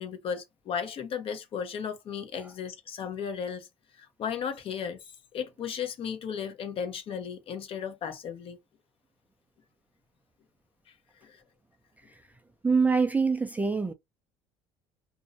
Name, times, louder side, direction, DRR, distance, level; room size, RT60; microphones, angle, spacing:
voice 1, 0.0-3.7 4.0-5.0 5.3-8.6 11.2-11.4, left 7 dB, 50° left, 0.7 m, -35 dB
voice 2, 12.6-13.9, right 4 dB, 10° right, 0.3 m, -25 dB
2.5 x 2.0 x 2.6 m
supercardioid pair, 95°, 12 cm